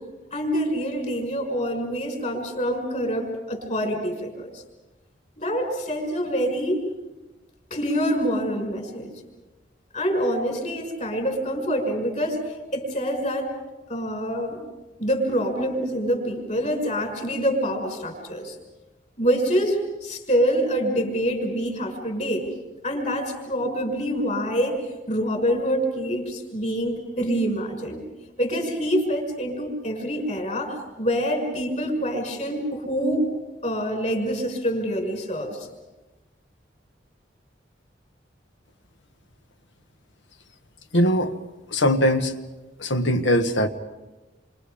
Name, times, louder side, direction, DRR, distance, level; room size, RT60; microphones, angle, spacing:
voice 1, 0.3-4.6 5.4-6.8 7.7-9.1 9.9-12.4 12.7-13.5 13.9-14.6 15.0-18.6 19.2-22.5 22.8-28.0 28.4-33.3 33.6-35.7, equal, 40° left, 5.8 m, -26 dB
voice 2, 40.9-41.3 41.7-42.4 42.8-43.7, equal, 75° left, 1.5 m, -21 dB
29.0 x 26.0 x 5.1 m
head